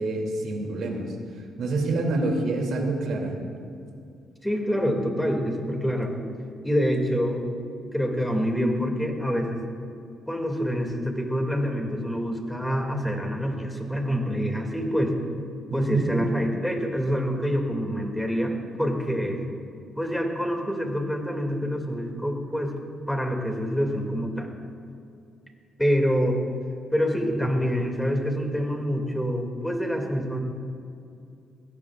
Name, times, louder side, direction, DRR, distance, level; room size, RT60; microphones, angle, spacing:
voice 1, 0.0-3.4 15.7-16.1, right 2 dB, 70° right, 1 dB, 2.8 m, -27 dB
voice 2, 4.4-6.1 6.6-7.5 7.9-9.6 10.3-15.2 15.7-19.4 20.0-22.7 23.1-24.5 25.8-26.4 26.9-30.4, equal, 5° left, 2 dB, 2.5 m, -26 dB
20.5 x 17.0 x 2.5 m, 2.5 s
cardioid pair, 90°, 0 cm